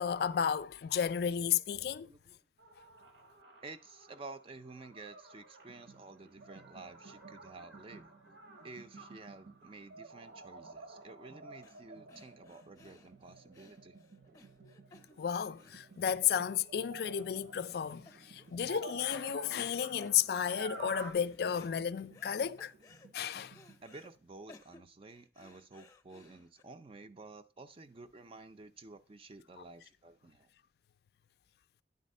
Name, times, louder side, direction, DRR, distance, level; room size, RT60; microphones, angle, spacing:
voice 1, 0.0-2.1 15.2-22.7 23.1-23.6, left 8 dB, 60° left, 0.3 m, -33 dB
voice 2, 2.0-2.4 3.6-8.1 8.6-14.0 23.8-30.5, right 3 dB, 30° right, 0.4 m, -51 dB
sound 1, 2.6-15.3 15.8-21.1, right 2 dB, 90° right, 1.7 m, -52 dB
sound 2, 5.7-23.8, right 4 dB, 60° right, 0.9 m, -60 dB
sound 3, 11.6-11.8 12.1-17.3 17.6-17.7 18.1-18.6 18.9-19.7 20.0-20.8 21.2-22.3 22.6-24.1 24.5-26.6, left 3 dB, 20° left, 0.7 m, -61 dB
9.4 x 4.1 x 5.3 m
head